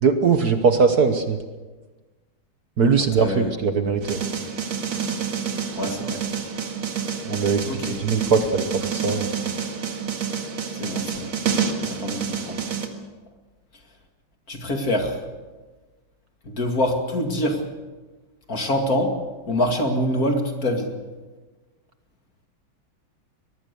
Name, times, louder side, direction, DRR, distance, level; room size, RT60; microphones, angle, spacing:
voice 1, 0.0-1.4 2.8-4.2 7.2-7.6 8.0-9.3, right 5 dB, 55° right, 8 dB, 1.5 m, -20 dB
voice 2, 3.0-3.5 5.7-6.2 7.7-8.0 10.7-11.3 11.8-12.6 14.5-15.2 16.5-17.6 18.5-19.2 19.5-21.0, left 1 dB, 45° left, 4 dB, 2.8 m, -25 dB
sound 1, 4.0-12.9, right 6 dB, 75° right, 2.7 m, -28 dB
23.5 x 20.0 x 6.9 m, 1.3 s
omnidirectional pair, 2.3 m